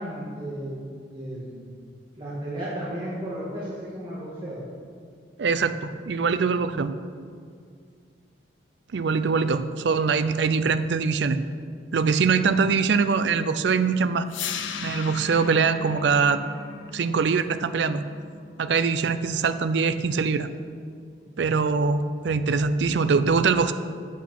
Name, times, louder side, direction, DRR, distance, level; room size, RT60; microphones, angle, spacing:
voice 1, 0.0-1.6 2.1-4.6, right 1 dB, 25° right, -10 dB, 2.1 m, -34 dB
voice 2, 5.4-6.9 8.9-11.4 11.9-14.3 14.8-16.4 16.9-18.0 18.6-20.5 21.4-23.7, right 5 dB, 70° right, 11 dB, 0.4 m, -23 dB
sound 1, 14.3-20.3, left 7 dB, 90° left, 0.7 m, -38 dB
8.3 x 8.2 x 5.9 m, 2.2 s
head